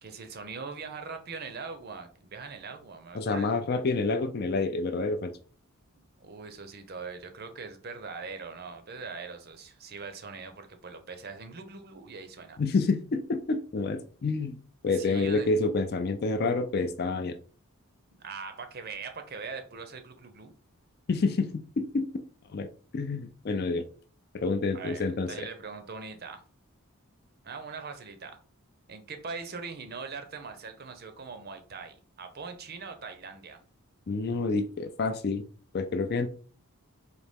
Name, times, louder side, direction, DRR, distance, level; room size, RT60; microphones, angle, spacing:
voice 1, 0.0-3.5 6.2-12.6 14.9-15.5 18.2-20.5 24.7-26.4 27.4-28.4 28.9-33.6, right 4 dB, 45° right, 7 dB, 0.6 m, -41 dB
voice 2, 3.1-5.3 12.6-14.6 14.8-17.4 21.1-22.1 22.5-22.7 22.9-23.9 24.3-25.3 34.1-35.4 35.7-36.3, left 3 dB, 45° left, 9 dB, 0.4 m, -28 dB
4.0 x 2.8 x 3.5 m, 0.42 s
head